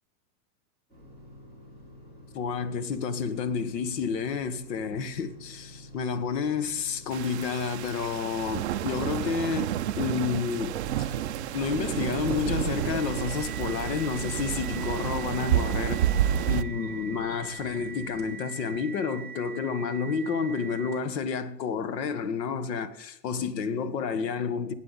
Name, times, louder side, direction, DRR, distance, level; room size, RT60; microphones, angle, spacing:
sound 1, 0.9-18.4, equal, 20° left, 5.3 m, -49 dB
voice 1, 2.3-11.1 11.5-16.0 16.5-24.7, left 6 dB, 90° left, 1.4 m, -30 dB
sound 2, 7.1-16.6, right 11 dB, 45° right, 0.4 m, -30 dB
sound 3, 12.7-21.2, right 7 dB, 5° left, 1.5 m, -43 dB
19.5 x 8.0 x 4.0 m
supercardioid pair, 180°, 49 cm